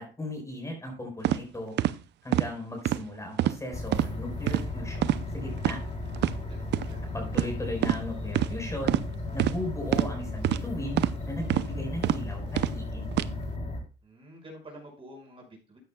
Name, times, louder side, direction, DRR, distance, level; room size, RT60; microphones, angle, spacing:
voice 1, 0.0-1.7 2.2-5.1 5.3-5.8 7.1-9.0 9.3-13.0, left 1 dB, 15° left, 1 dB, 4.8 m, -37 dB
sound 1, 1.2-1.4 1.8-1.9 2.3-2.5 2.9-3.0 3.4-3.6 3.9-4.1 4.5-4.6 5.0-5.2 5.6-5.8 6.2-6.3 6.7-6.9 7.3-7.5 7.8-8.0 8.3-8.5 8.9-9.1 9.4-9.6 9.9-10.1 10.4-10.6 11.0-11.2 11.5-11.7 12.0-12.2 12.6-12.8 13.1-13.3, right 13 dB, 65° right, 0.6 m, -25 dB
sound 2, 3.7-13.8, left 2 dB, 35° left, 3.7 m, -35 dB
voice 2, 6.2-7.0 14.0-15.8, equal, 30° right, -1 dB, 5.6 m, -49 dB
13.5 x 9.2 x 2.3 m, 0.33 s
cardioid pair, 95°, 19 cm